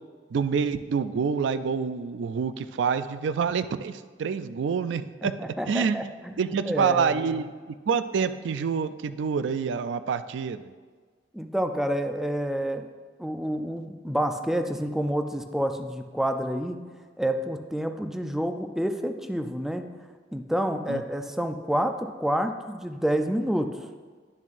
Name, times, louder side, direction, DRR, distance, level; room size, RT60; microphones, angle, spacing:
voice 1, 0.3-5.3 5.7-6.0 6.4-7.5 7.9-10.7 20.9-21.0, right 6 dB, 80° right, 12 dB, 0.3 m, -27 dB
voice 2, 5.2-7.4 11.3-12.8 13.2-16.8 17.2-19.8 20.3-23.7, equal, ahead, 6 dB, 0.4 m, -28 dB
10.0 x 7.1 x 2.5 m, 1.5 s
head